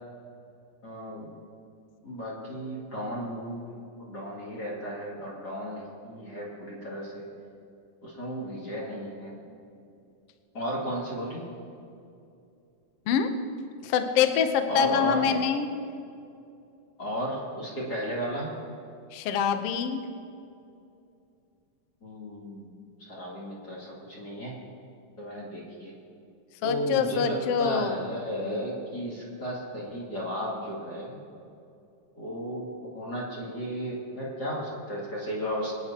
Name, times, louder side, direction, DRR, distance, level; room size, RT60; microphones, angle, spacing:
voice 1, 0.8-1.4 2.0-7.3 8.0-9.3 10.5-11.4 14.7-15.4 17.0-18.5 22.0-22.7 23.0-24.5 25.2-25.9 26.6-31.2 32.2-35.7, equal, 35° left, -6 dB, 2.7 m, -34 dB
voice 2, 13.8-15.7 19.1-20.0 26.6-28.1, left 7 dB, 75° left, 7 dB, 1.4 m, -25 dB
25.0 x 9.8 x 2.9 m, 2.6 s
omnidirectional pair, 3.7 m